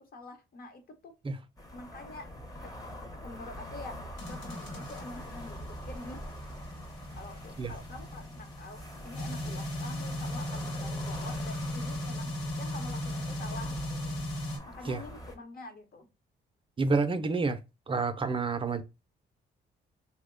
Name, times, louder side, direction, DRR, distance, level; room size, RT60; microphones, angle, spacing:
voice 1, 0.0-1.1 1.7-2.3 2.6-2.7 3.2-6.2 7.2-14.3 14.6-16.1, left 2 dB, 50° left, 0.9 m, -46 dB
sound 1, 1.6-15.4, equal, 20° left, 0.7 m, -44 dB
sound 2, 4.2-14.6, left 1 dB, 75° left, 1.1 m, -37 dB
voice 2, 16.8-17.6 17.9-18.8, right 4 dB, 25° right, 0.5 m, -28 dB
2.9 x 2.1 x 3.6 m
cardioid pair, 90°, 20 cm